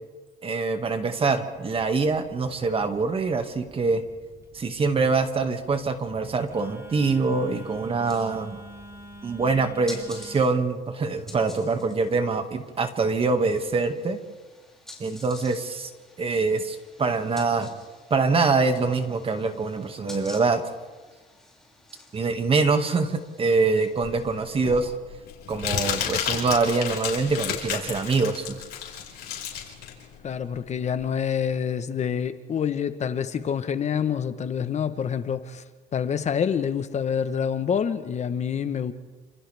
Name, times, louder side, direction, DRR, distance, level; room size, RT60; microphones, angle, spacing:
voice 1, 0.4-4.0 4.5-8.6 9.2-14.2 15.0-15.9 16.2-17.7 18.1-20.6 22.1-24.9 25.5-28.5, right 4 dB, 35° right, 6 dB, 2.0 m, -24 dB
Telephone, 1.5-10.4, right 1 dB, 15° right, 7.0 m, -47 dB
sound 1, 7.6-25.0, left 2 dB, 5° left, 6.0 m, -50 dB
Crumpling crinkling, 24.0-31.1, left 9 dB, 70° left, 5.4 m, -32 dB
voice 2, 30.2-35.6 35.9-38.9, left 7 dB, 40° left, 10 dB, 1.1 m, -27 dB
29.5 x 27.0 x 3.5 m, 1.3 s
cardioid pair, 110°, 17 cm